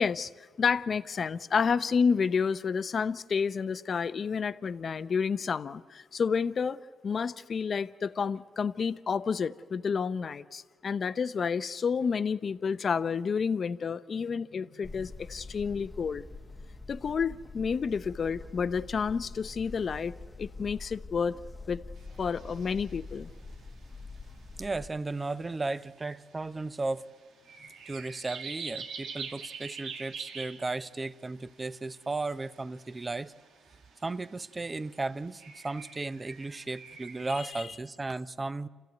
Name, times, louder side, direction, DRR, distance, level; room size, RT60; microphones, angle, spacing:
voice 1, 0.0-16.2 16.9-21.4 21.7-21.8 22.2-23.3 37.4-37.6, left 6 dB, 45° left, 0.7 m, -30 dB
sound 1, 14.8-24.9, left 3 dB, 15° left, 1.0 m, -45 dB
sound 2, 22.0-37.5, right 6 dB, 75° right, 2.0 m, -46 dB
voice 2, 24.6-27.1 27.9-33.3 34.0-38.7, right 3 dB, 25° right, 0.7 m, -35 dB
28.5 x 14.5 x 9.4 m
cardioid pair, 90°, 0 cm